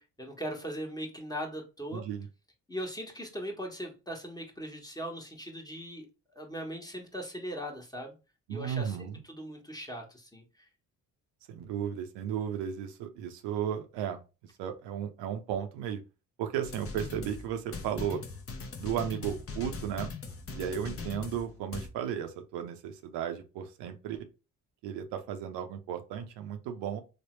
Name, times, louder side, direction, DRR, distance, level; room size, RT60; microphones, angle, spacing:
voice 1, 0.0-2.0 2.7-6.1 6.3-8.1 8.5-10.7, equal, 10° left, 1 dB, 1.1 m, -39 dB
voice 2, 1.9-2.3 8.5-9.2 11.5-14.2 14.6-16.0 16.4-18.2 18.8-20.2 20.5-24.3 24.8-27.0, right 9 dB, 85° right, 7 dB, 0.6 m, -35 dB
sound 1, 16.6-21.9, left 4 dB, 35° left, 0.7 m, -40 dB
3.2 x 2.1 x 3.1 m, 0.30 s
supercardioid pair, 55°, 41 cm